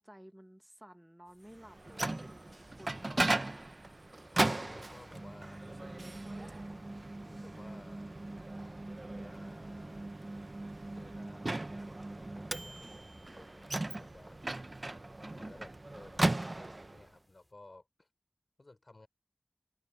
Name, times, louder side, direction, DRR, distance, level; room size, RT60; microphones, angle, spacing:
voice 1, 0.0-3.5, equal, 10° right, 1.2 m, -54 dB
sound 1, 1.2-17.5, equal, 15° left, 4.8 m, -66 dB
Microwave oven, 1.6-17.1, right 2 dB, 50° right, 0.7 m, -37 dB
voice 2, 4.3-5.9 7.2-8.5 9.1-10.1 10.9-12.8 13.2-14.4 15.2-18.1 18.6-19.1, left 2 dB, 60° left, 5.3 m, -56 dB
open air
wide cardioid pair, 50°, 0 cm